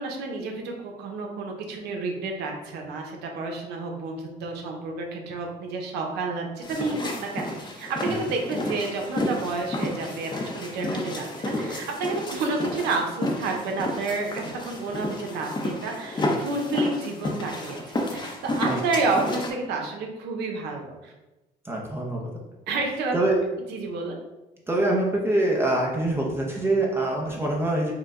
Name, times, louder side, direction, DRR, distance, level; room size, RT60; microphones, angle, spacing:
voice 1, 0.0-21.1 22.7-23.2 23.7-24.2, right 3 dB, 85° right, 1 dB, 0.8 m, -30 dB
sound 1, 6.6-19.5, left 1 dB, 25° left, 0.7 m, -31 dB
voice 2, 21.6-22.3 23.1-23.4 24.7-27.9, right 2 dB, 15° right, -2 dB, 0.6 m, -24 dB
4.8 x 2.2 x 3.7 m, 1.0 s
cardioid pair, 110°, 17 cm